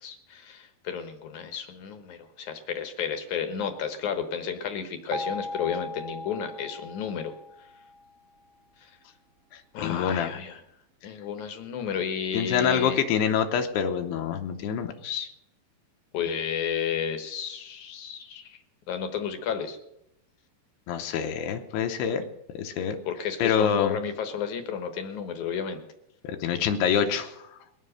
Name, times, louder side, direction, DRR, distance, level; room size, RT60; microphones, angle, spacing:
voice 1, 0.0-7.3 9.7-10.6 11.0-13.0 16.1-18.6 18.9-19.8 23.0-25.8, left 7 dB, 65° left, 8 dB, 2.1 m, -32 dB
sound 1, 5.1-8.1, left 1 dB, 70° right, 1.5 m, -38 dB
voice 2, 9.8-10.3 12.3-15.3 20.9-22.2 22.5-23.0 23.4-24.0 26.2-27.3, left 8 dB, 85° left, 5 dB, 3.0 m, -26 dB
21.5 x 7.5 x 6.6 m, 0.83 s
omnidirectional pair, 4.8 m